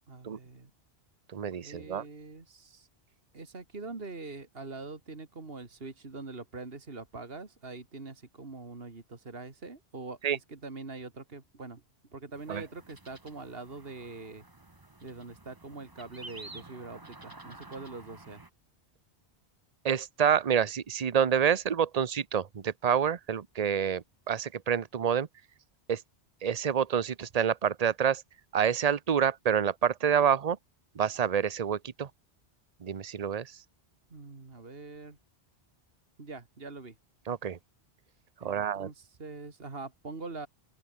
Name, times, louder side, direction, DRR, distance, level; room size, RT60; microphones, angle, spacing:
voice 1, 0.1-0.7 1.6-2.9 3.3-11.8 12.1-14.4 15.0-18.4 34.1-35.2 36.2-37.0 38.4-40.5, right 3 dB, 65° right, 2.6 m, -43 dB
voice 2, 1.3-2.0 10.2-10.4 12.5-12.6 19.8-25.3 25.9-26.0 26.4-28.2 28.5-30.6 30.9-32.1 32.8-33.6 37.3-37.6 38.4-38.9, right 8 dB, 40° right, 0.9 m, -28 dB
sound 1, 12.3-18.5, right 2 dB, 20° right, 1.3 m, -51 dB
open air
omnidirectional pair, 1.1 m